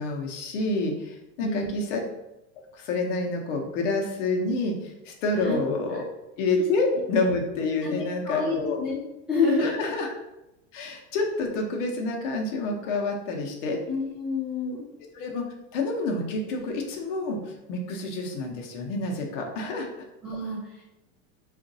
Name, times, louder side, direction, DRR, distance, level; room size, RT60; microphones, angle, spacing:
voice 1, 0.0-2.0 2.7-6.0 6.4-8.8 9.6-10.1 10.7-13.8 15.1-15.4 15.7-19.9, left 3 dB, 75° left, 1 dB, 0.8 m, -28 dB
voice 2, 7.8-9.0 9.3-9.7 13.9-14.8 20.2-20.6, left 3 dB, 5° right, -11 dB, 0.4 m, -27 dB
3.8 x 2.5 x 2.6 m, 0.92 s
supercardioid pair, 175°, 37 cm